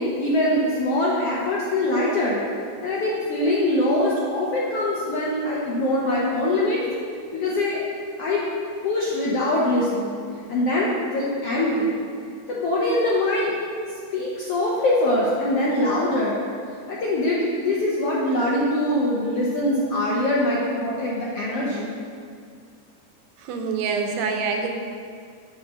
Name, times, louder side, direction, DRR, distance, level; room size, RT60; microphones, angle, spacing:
voice 1, 0.0-2.4 2.8-6.8 7.3-7.8 8.2-8.4 8.8-10.1 10.5-11.9 12.5-13.5 14.1-16.4 16.9-21.9, left 1 dB, 70° left, -6 dB, 1.4 m, -23 dB
voice 2, 23.5-24.7, right 5 dB, 85° right, 3 dB, 2.3 m, -25 dB
8.0 x 4.2 x 6.1 m, 2.2 s
omnidirectional pair, 3.7 m